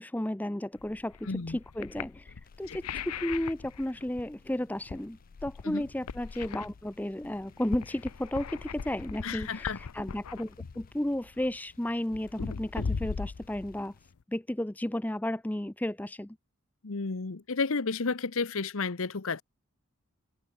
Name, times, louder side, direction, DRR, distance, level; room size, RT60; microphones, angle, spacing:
voice 1, 0.0-13.9 14.3-16.4, left 1 dB, 5° left, 0.4 m, -33 dB
sound 1, 0.8-14.2, left 5 dB, 90° left, 0.6 m, -40 dB
voice 2, 1.2-1.6 2.7-2.8 5.6-5.8 9.2-9.8 16.8-19.4, left 4 dB, 70° left, 0.9 m, -32 dB
sound 2, 2.4-14.1, left 6 dB, 40° left, 7.4 m, -66 dB
open air
head